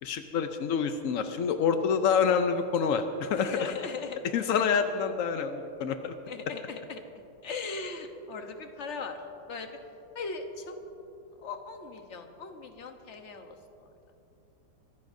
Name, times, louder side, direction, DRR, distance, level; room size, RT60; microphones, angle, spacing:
voice 1, 0.0-3.7 4.3-6.1, left 6 dB, 75° left, 7 dB, 0.7 m, -27 dB
voice 2, 3.4-4.2 6.3-7.0 7.4-9.2 9.5-9.7 10.1-10.7 11.4-13.9, left 4 dB, 45° left, 5 dB, 1.1 m, -39 dB
25.0 x 15.5 x 2.7 m, 2.8 s
omnidirectional pair, 2.1 m